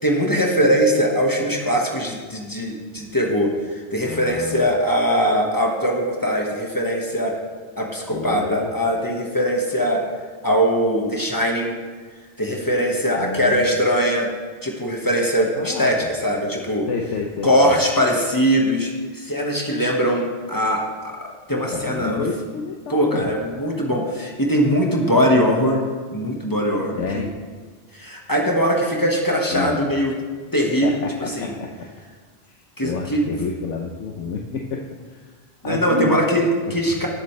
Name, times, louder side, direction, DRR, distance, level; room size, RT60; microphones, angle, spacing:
voice 1, 0.0-7.4 7.8-10.0 10.4-11.8 12.4-14.3 14.6-16.9 17.4-22.3 22.9-25.8 26.1-27.2 27.9-30.1 30.5-30.9 31.2-31.5 32.8-33.5 35.6-37.1, equal, 15° left, -1 dB, 1.5 m, -21 dB
voice 2, 4.0-4.7 8.1-8.7 13.2-13.8 15.5-16.1 16.9-17.8 21.5-23.3 27.0-27.3 29.5-29.8 30.8-31.9 32.5-35.3 35.6-36.2 36.6-36.7, left 5 dB, 85° left, 1 dB, 1.1 m, -30 dB
18.0 x 8.2 x 3.3 m, 1.5 s
omnidirectional pair, 1.2 m